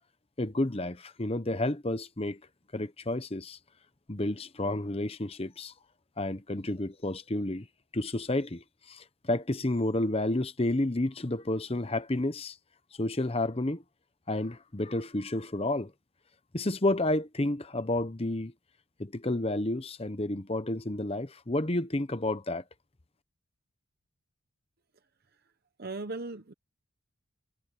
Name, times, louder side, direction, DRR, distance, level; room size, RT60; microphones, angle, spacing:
voice 1, 0.4-2.4 2.7-3.6 4.1-5.7 6.2-7.7 7.9-12.6 13.0-13.8 14.3-15.9 16.5-18.5 19.0-22.6, left 1 dB, 25° left, 1.0 m, -30 dB
voice 2, 25.8-26.5, right 2 dB, 45° right, 0.9 m, -38 dB
head